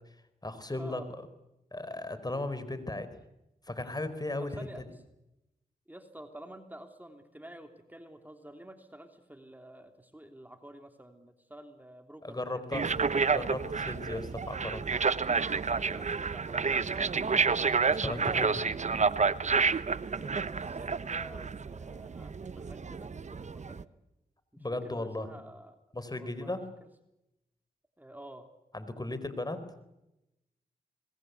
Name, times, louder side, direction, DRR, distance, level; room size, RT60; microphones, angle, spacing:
voice 1, 0.4-1.0 1.7-3.1 3.7-4.6 12.2-12.9 13.3-14.8 17.9-18.6 24.6-25.3 25.9-26.7 28.7-29.6, left 2 dB, 25° left, 12 dB, 4.4 m, -36 dB
voice 2, 4.4-4.8 5.9-13.0 15.7-17.3 20.2-23.9 24.5-25.8 26.1-26.6 28.0-28.4, right 1 dB, 10° right, 6 dB, 3.4 m, -49 dB
sound 1, 12.7-23.8, right 5 dB, 50° right, 1.0 m, -30 dB
26.5 x 21.0 x 8.3 m, 0.91 s
supercardioid pair, 45°, 16 cm